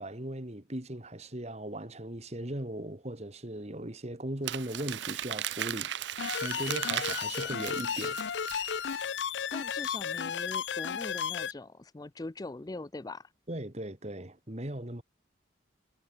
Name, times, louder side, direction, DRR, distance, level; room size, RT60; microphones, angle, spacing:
voice 1, 0.0-8.2 13.5-15.0, right 1 dB, 35° right, 2.5 m, -38 dB
Crumpling crinkling, 4.4-9.0, right 11 dB, 70° right, 0.6 m, -36 dB
sound 1, 6.2-11.5, left 7 dB, 70° left, 0.5 m, -34 dB
voice 2, 9.5-13.3, left 2 dB, 20° left, 0.5 m, -42 dB
head